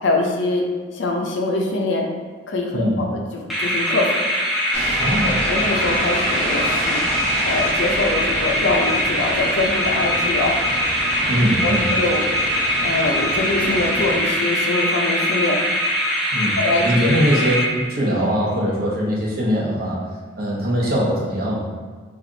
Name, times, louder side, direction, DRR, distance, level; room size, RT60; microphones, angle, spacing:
voice 1, 0.0-0.7 0.9-2.0 2.5-4.2 5.2-7.1 7.5-10.6 11.6-12.2 12.8-15.6 16.6-16.9, left 2 dB, 70° left, 1 dB, 0.5 m, -23 dB
sound 1, 3.5-18.1, equal, ahead, 0.6 m, -22 dB
sound 2, 4.7-14.1, right 1 dB, 90° right, 1.1 m, -30 dB
voice 2, 5.0-5.4 11.2-11.9 16.3-20.0 20.4-21.7, equal, 50° right, -5 dB, 0.8 m, -21 dB
3.2 x 2.5 x 3.8 m, 1.5 s
head